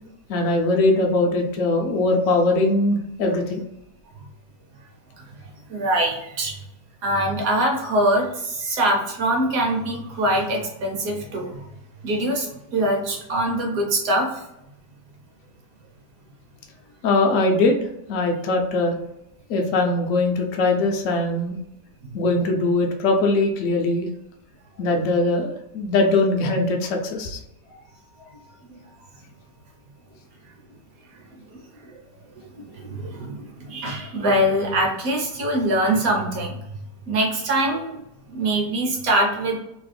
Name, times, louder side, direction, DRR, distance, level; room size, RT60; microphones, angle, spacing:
voice 1, 0.3-3.6 17.0-18.9 19.5-21.6 22.1-24.1 24.8-27.4, left 2 dB, 75° left, 1 dB, 0.7 m, -21 dB
voice 2, 5.7-6.5 7.0-11.6 12.0-14.3 28.7-28.8 32.6-36.6 37.1-38.0 38.3-39.6, right 1 dB, 65° right, 0 dB, 1.1 m, -23 dB
3.0 x 2.1 x 3.3 m, 0.83 s
omnidirectional pair, 1.9 m